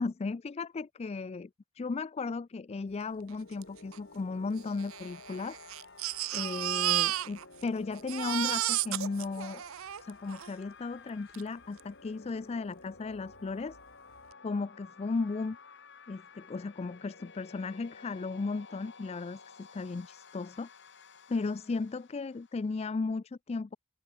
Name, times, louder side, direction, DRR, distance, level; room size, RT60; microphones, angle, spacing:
voice 1, 0.0-1.5 1.7-5.6 6.3-9.6 10.0-13.8 14.4-15.6 16.1-20.7 21.3-23.8, left 4 dB, 30° left, 0.3 m, -35 dB
sound 1, 3.0-22.8, left 4 dB, 55° left, 4.8 m, -54 dB
Crying sobbing, 3.6-3.7 3.9-4.0 4.8-7.7 7.9-10.5 11.3-11.4 11.8-11.9, right 14 dB, 70° right, 0.5 m, -32 dB
open air
head